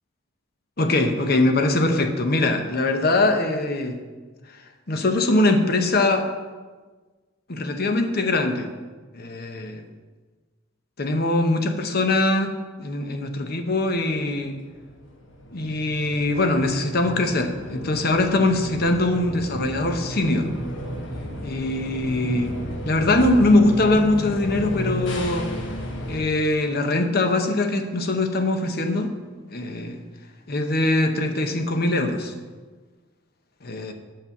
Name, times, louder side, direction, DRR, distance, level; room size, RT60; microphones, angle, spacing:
voice 1, 0.8-4.0 4.9-6.3 7.5-8.7 9.1-9.8 11.0-12.5 12.8-14.6 15.5-20.5 21.4-22.5 22.8-25.5 26.1-29.1 29.5-30.0 30.5-32.3 33.6-33.9, left 2 dB, 55° left, 6 dB, 1.0 m, -22 dB
sound 1, 13.9-26.2, equal, 70° left, 1.3 m, -33 dB
8.6 x 5.4 x 7.1 m, 1.3 s
head